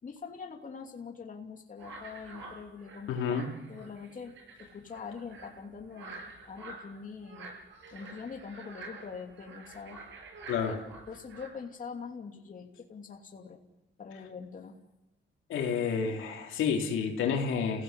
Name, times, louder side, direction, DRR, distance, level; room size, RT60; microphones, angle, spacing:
voice 1, 0.0-7.5 7.9-10.0 11.1-13.6 14.0-14.8, left 5 dB, 40° left, 3 dB, 2.8 m, -44 dB
sound 1, 1.8-11.5, right 3 dB, 70° right, 7.6 m, -48 dB
voice 2, 3.1-3.5 10.5-10.8 15.5-17.8, left 6 dB, 85° left, 2 dB, 3.5 m, -30 dB
29.0 x 17.0 x 8.3 m, 1.0 s
cardioid pair, 90°, 20 cm